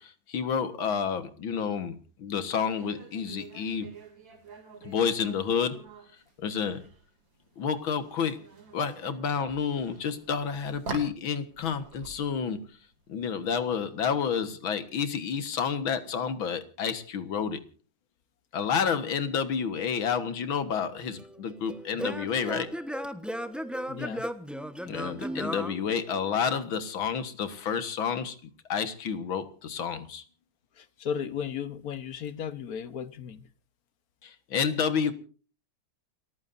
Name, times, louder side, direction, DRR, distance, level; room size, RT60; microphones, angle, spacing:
voice 1, 0.0-3.9 4.8-5.8 6.4-6.8 7.6-8.4 8.7-12.6 13.1-17.6 18.5-22.7 24.8-28.4 28.7-30.2 34.2-35.1, left 6 dB, 70° left, 2.3 m, -30 dB
sound 1, 2.7-14.0, right 4 dB, 65° right, 3.5 m, -47 dB
Singing / Plucked string instrument, 20.7-26.6, equal, ahead, 0.4 m, -36 dB
voice 2, 23.9-24.2 30.7-33.5, left 7 dB, 50° left, 1.3 m, -35 dB
29.0 x 14.5 x 2.6 m
omnidirectional pair, 2.3 m